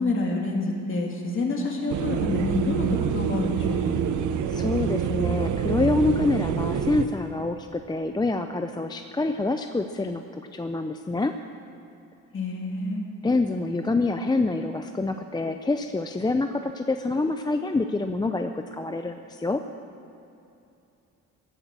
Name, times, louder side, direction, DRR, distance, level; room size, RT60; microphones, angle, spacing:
voice 1, 0.0-4.0 12.3-13.0, left 2 dB, 45° left, 0 dB, 2.8 m, -28 dB
sound 1, 1.9-7.1, right 8 dB, 75° right, 0.8 m, -26 dB
voice 2, 4.5-10.2 10.5-11.3 13.2-19.6, left 3 dB, 15° left, 7 dB, 0.6 m, -26 dB
16.0 x 8.8 x 7.5 m, 2.7 s
cardioid pair, 90°, 30 cm